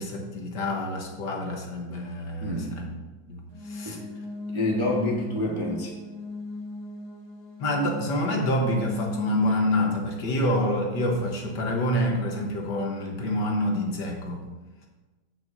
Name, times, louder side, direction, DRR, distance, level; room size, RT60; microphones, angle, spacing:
voice 1, 0.0-2.9 3.3-4.0 7.6-14.4, left 1 dB, 60° left, 1 dB, 1.7 m, -27 dB
voice 2, 2.4-2.7 3.8-4.0 4.5-5.9, left 2 dB, 25° right, -2 dB, 0.7 m, -27 dB
sound 1, 3.5-9.5, left 1 dB, 20° left, 0.7 m, -36 dB
15.0 x 6.1 x 2.7 m, 1.2 s
omnidirectional pair, 2.2 m